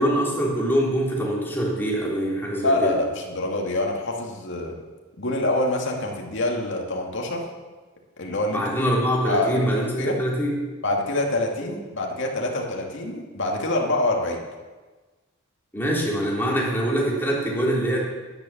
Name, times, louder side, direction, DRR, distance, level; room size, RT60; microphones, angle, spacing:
voice 1, 0.0-2.9 8.5-10.6 11.6-11.7 15.7-18.0, equal, 10° left, -4 dB, 3.5 m, -24 dB
voice 2, 2.6-4.8 5.2-7.4 8.2-8.8 9.2-9.7 10.0-10.1 10.8-14.4, left 2 dB, 60° left, 0 dB, 2.4 m, -25 dB
11.0 x 10.5 x 7.3 m, 1.3 s
head